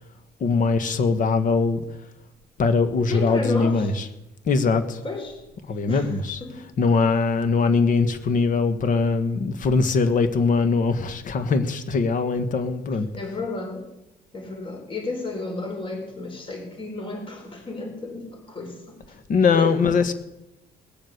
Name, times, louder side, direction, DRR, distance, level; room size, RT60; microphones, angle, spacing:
voice 1, 0.4-1.8 2.6-4.1 4.4-5.0 5.7-6.4 6.8-13.1 19.3-20.1, left 4 dB, 50° left, 10 dB, 1.6 m, -21 dB
voice 2, 3.1-3.8 5.0-5.4 5.9-6.1 6.4-6.6 13.2-13.8 14.3-19.0 19.5-19.7, left 3 dB, 30° left, 3 dB, 4.3 m, -32 dB
19.5 x 7.4 x 6.7 m, 0.91 s
cardioid pair, 110°, 17 cm